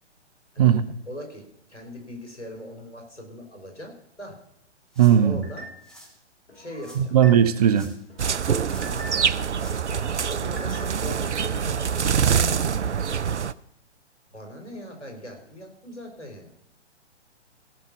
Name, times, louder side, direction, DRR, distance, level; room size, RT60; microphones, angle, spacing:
voice 1, 1.1-1.4 1.7-4.4 5.2-5.7 6.5-7.2 8.8-9.1 9.9-10.0 10.3-12.5 13.1-13.2 14.3-16.5, equal, 80° left, 2 dB, 4.5 m, -40 dB
sound 1, 4.9-5.3 5.8-6.2 6.8-7.0 7.6-8.1 8.4-9.1 9.5-9.8 10.5-10.6, equal, ahead, 2.0 m, -49 dB
voice 2, 5.0-5.4 7.0-7.9, right 9 dB, 35° right, 13 dB, 0.7 m, -18 dB
sound 2, 5.4-6.0 6.5-7.7 8.1-9.4 9.8-11.2 11.6-12.1, equal, 65° left, 5.9 m, -45 dB
sound 3, 8.2-13.5, right 7 dB, 75° right, 0.6 m, -25 dB
16.5 x 5.8 x 7.0 m, 0.73 s
figure-of-eight pair, 125°, 35 cm